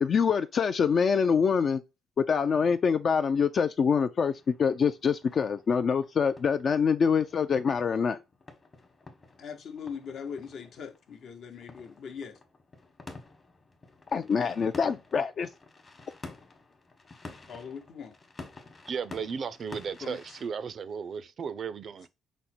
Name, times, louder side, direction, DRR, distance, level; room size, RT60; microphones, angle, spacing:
voice 1, 0.0-1.8 2.2-8.2 14.1-15.5, left 6 dB, 50° left, 0.3 m, -25 dB
sound 1, 4.2-20.5, left 3 dB, 35° left, 1.0 m, -50 dB
voice 2, 9.4-12.4 17.5-18.1 20.0-20.2, left 6 dB, 70° left, 0.8 m, -41 dB
voice 3, 18.9-22.1, right 6 dB, 55° right, 0.4 m, -35 dB
5.1 x 2.1 x 4.3 m
cardioid pair, 90°, 0 cm